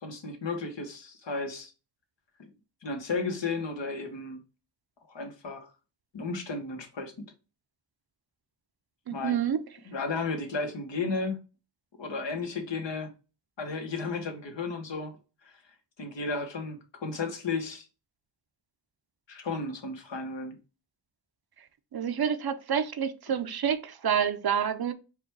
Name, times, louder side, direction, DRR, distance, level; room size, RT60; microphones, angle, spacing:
voice 1, 0.0-1.7 2.4-2.5 2.8-4.4 5.1-5.7 6.1-7.1 9.1-9.4 9.9-11.4 12.0-13.1 13.6-15.2 15.4-15.5 16.0-17.9 19.3-20.6, left 3 dB, 80° left, 1.1 m, -33 dB
voice 2, 9.1-9.6 21.9-24.9, right 8 dB, 60° right, 0.6 m, -28 dB
4.8 x 2.2 x 4.5 m
wide cardioid pair, 65°, 43 cm